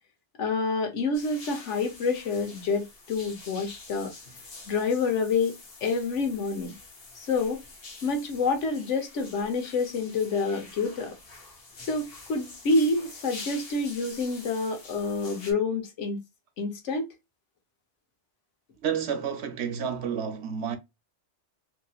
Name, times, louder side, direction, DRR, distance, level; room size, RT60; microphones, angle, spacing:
voice 1, 0.4-4.1 4.7-6.7 7.1-7.6 8.0-11.1 11.8-16.2 16.6-17.1, left 3 dB, 80° left, 1.2 m, -28 dB
sound 1, 1.1-15.5, left 3 dB, 55° left, 1.1 m, -46 dB
voice 2, 18.8-20.8, right 7 dB, 70° right, 0.9 m, -30 dB
2.9 x 2.7 x 2.3 m
omnidirectional pair, 1.2 m